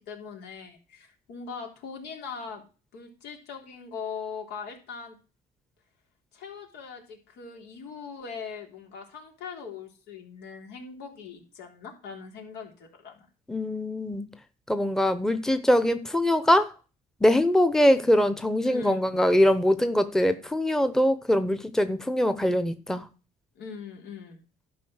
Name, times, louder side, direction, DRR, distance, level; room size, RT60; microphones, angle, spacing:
voice 1, 0.0-2.6 2.9-5.2 6.3-13.3 18.6-19.0 23.6-24.4, left 5 dB, 80° left, 3.6 m, -40 dB
voice 2, 13.5-14.3 14.7-16.7 17.2-23.0, left 1 dB, 5° left, 0.9 m, -23 dB
12.0 x 5.4 x 6.4 m
cardioid pair, 110°, 17 cm